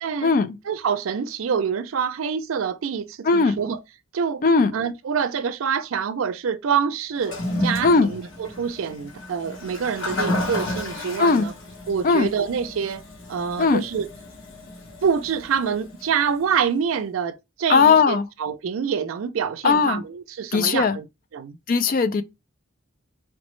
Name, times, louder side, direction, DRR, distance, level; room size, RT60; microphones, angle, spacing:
voice 1, 0.0-0.3 0.7-3.8 4.1-4.4 4.7-11.5 11.9-13.0 13.3-14.1 15.0-21.1 21.3-21.6, right 7 dB, 90° right, 0.4 m, -26 dB
voice 2, 3.3-3.6 4.4-4.7 7.8-8.1 11.2-11.5 12.0-12.3 13.6-13.8 17.7-18.3 19.6-20.0 20.5-21.0 21.7-22.2, left 4 dB, 45° left, 0.3 m, -18 dB
Toilet flush, 7.2-16.5, left 1 dB, 80° left, 1.0 m, -32 dB
4.3 x 2.0 x 3.0 m
head